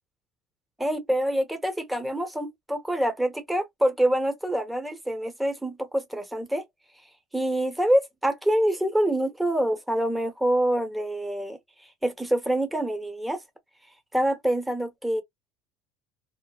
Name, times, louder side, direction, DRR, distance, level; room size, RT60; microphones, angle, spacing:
voice 1, 0.8-6.6 7.3-11.6 12.0-13.4 14.1-15.2, right 1 dB, 5° right, 0.9 m, -26 dB
2.9 x 2.0 x 2.3 m
supercardioid pair, 105°, 0 cm